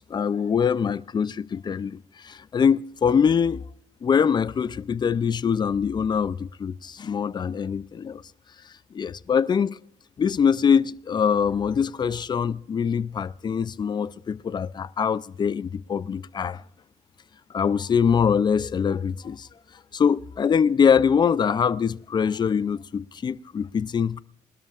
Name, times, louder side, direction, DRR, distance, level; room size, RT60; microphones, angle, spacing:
voice 1, 0.1-2.0 2.3-3.6 4.0-8.2 8.9-9.7 10.2-16.6 17.5-19.5 19.9-24.2, left 7 dB, 35° left, 0.4 m, -23 dB
22.5 x 12.5 x 2.5 m
cardioid pair, 100°, 12 cm